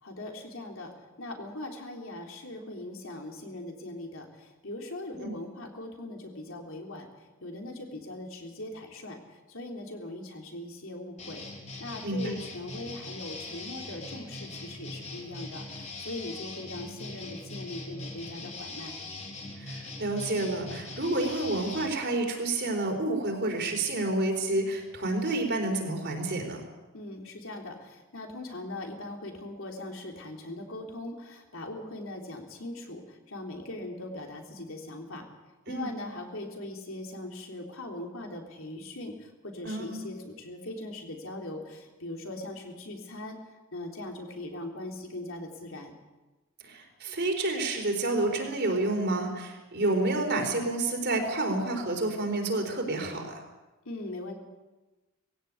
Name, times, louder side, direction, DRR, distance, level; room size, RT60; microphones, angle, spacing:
voice 1, 0.0-11.4 11.8-19.0 26.9-35.3 35.7-43.4 43.7-45.9 53.9-54.3, left 1 dB, 60° left, 2 dB, 3.5 m, -40 dB
sound 1, 11.2-21.9, left 2 dB, 30° left, 3.2 m, -41 dB
voice 2, 12.0-12.3 19.6-26.6 35.7-35.9 39.6-40.1 46.6-53.3, right 2 dB, 50° right, 3 dB, 4.1 m, -29 dB
20.0 x 16.5 x 8.4 m, 1.1 s
head